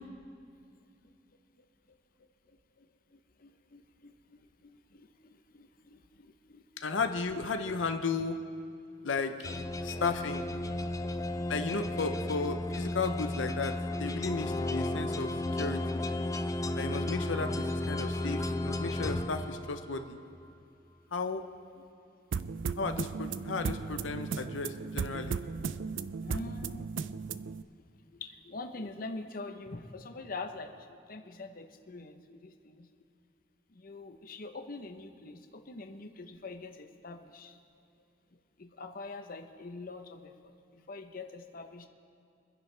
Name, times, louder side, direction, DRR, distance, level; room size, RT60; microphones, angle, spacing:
voice 1, 2.2-6.9 9.0-9.2 10.1-10.5 11.1-11.5 15.4-15.5 16.4-16.5 21.1-21.2 21.8-21.9 22.4-22.8 26.2-27.5 28.1-32.9 33.7-37.6 38.6-41.9, left 3 dB, 50° left, 6 dB, 0.8 m, -45 dB
voice 2, 6.8-8.4 9.0-9.3 9.8-10.5 11.5-13.7 14.0-16.0 16.7-20.2 21.1-21.4 22.8-25.4, left 4 dB, 85° left, 7 dB, 0.8 m, -34 dB
sound 1, 9.4-20.1, left 1 dB, 20° left, 0.4 m, -34 dB
sound 2, 22.3-27.6, right 5 dB, 80° right, 0.4 m, -36 dB
25.0 x 10.5 x 3.3 m, 2.5 s
head